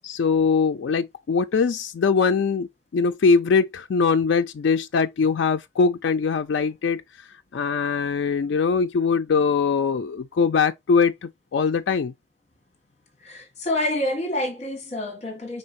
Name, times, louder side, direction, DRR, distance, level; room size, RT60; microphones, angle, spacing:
voice 1, 0.0-7.0 7.5-12.1, left 5 dB, 60° left, 0.3 m, -22 dB
voice 2, 13.2-15.6, left 1 dB, 35° left, 1.3 m, -27 dB
4.3 x 3.8 x 2.5 m
head